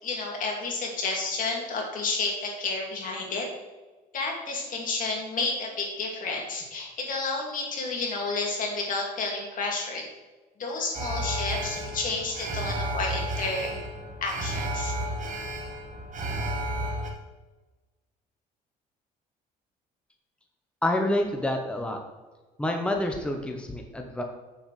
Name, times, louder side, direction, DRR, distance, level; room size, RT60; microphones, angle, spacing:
voice 1, 0.0-3.5 4.1-10.0 10.6-13.8 14.2-14.9, left 3 dB, 55° left, 0 dB, 2.3 m, -31 dB
Alarm, 10.9-17.1, right 1 dB, 50° right, 1.6 m, -32 dB
voice 2, 20.8-22.0 22.6-24.2, left 1 dB, 5° left, 3 dB, 0.9 m, -28 dB
7.9 x 7.1 x 3.3 m, 1.3 s
cardioid pair, 110°, 17 cm